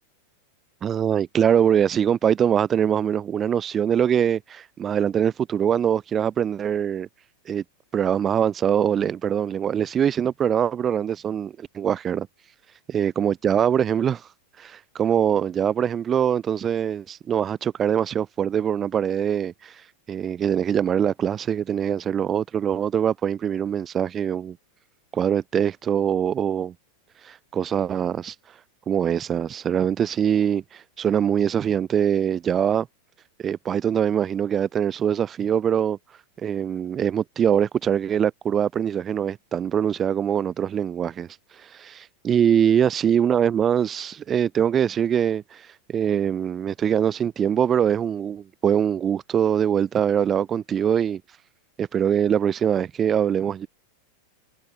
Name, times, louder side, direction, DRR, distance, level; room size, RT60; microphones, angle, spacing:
voice 1, 0.8-7.1 7.5-7.6 7.9-12.3 12.9-14.3 14.6-19.7 20.1-24.6 25.1-26.7 27.2-28.3 28.9-32.9 33.4-36.0 36.4-41.3 41.6-51.2 51.8-53.7, right 8 dB, 25° right, 0.9 m, -23 dB
figure-of-eight pair, 90°, 0 cm